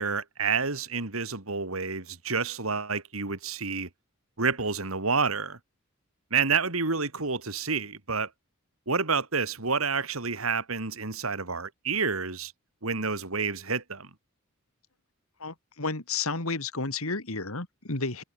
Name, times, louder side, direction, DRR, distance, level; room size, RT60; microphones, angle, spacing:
voice 1, 0.0-3.9 4.4-5.6 6.3-8.3 8.9-12.5 12.8-14.1, right 5 dB, 70° right, 2.7 m, -29 dB
voice 2, 15.4-18.2, left 3 dB, 70° left, 3.0 m, -32 dB
head